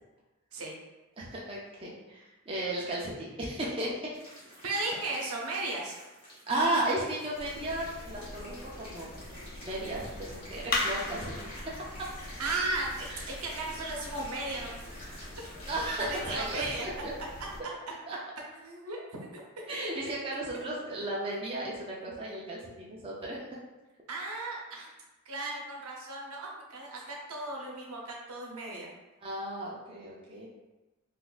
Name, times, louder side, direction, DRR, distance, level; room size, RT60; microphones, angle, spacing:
voice 1, 1.2-4.1 6.5-9.2 9.6-12.1 13.1-13.2 15.7-17.1 18.1-18.2 19.7-23.4 29.2-30.5, right 1 dB, 25° right, -5 dB, 0.4 m, -34 dB
sound 1, 4.1-16.8, equal, 25° left, 1.1 m, -50 dB
voice 2, 4.6-6.0 12.4-14.8 16.1-16.8 18.6-19.6 24.1-24.9 25.3-28.9, right 2 dB, 85° right, -1 dB, 0.7 m, -36 dB
sound 2, 7.3-17.6, left 2 dB, 40° left, 0.4 m, -40 dB
3.8 x 2.4 x 2.4 m, 1.1 s
head